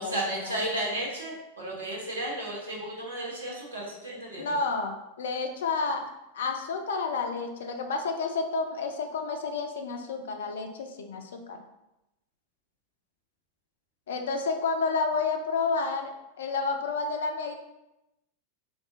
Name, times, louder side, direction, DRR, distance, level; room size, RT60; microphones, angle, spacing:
voice 1, 0.0-4.6, right 1 dB, 70° right, -3 dB, 0.8 m, -33 dB
voice 2, 4.4-11.6 14.1-17.5, left 4 dB, 60° left, 5 dB, 0.4 m, -30 dB
3.7 x 2.3 x 2.4 m, 0.92 s
figure-of-eight pair, 90°, 0 cm